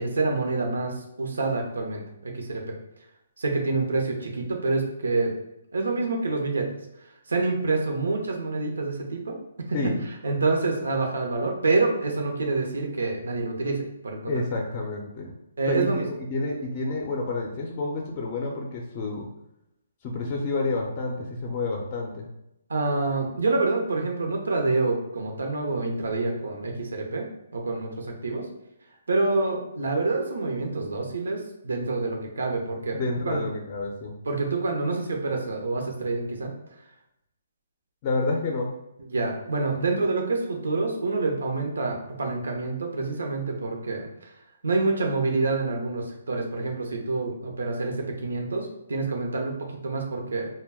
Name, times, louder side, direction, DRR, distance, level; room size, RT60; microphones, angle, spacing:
voice 1, 0.0-2.8 3.4-5.3 5.7-6.7 7.3-9.4 9.7-9.8 10.2-14.3 15.6-16.1 22.7-28.5 29.1-33.0 33.3-33.4 34.3-36.5 39.1-44.3 44.6-50.5, right 3 dB, 85° right, 2 dB, 0.7 m, -27 dB
voice 2, 14.3-15.3 15.7-15.9 16.3-19.3 20.0-22.3 32.9-34.1 38.0-38.7, left 3 dB, 30° left, 0 dB, 0.5 m, -29 dB
2.2 x 2.2 x 3.4 m, 0.83 s
hypercardioid pair, 155°, 0 cm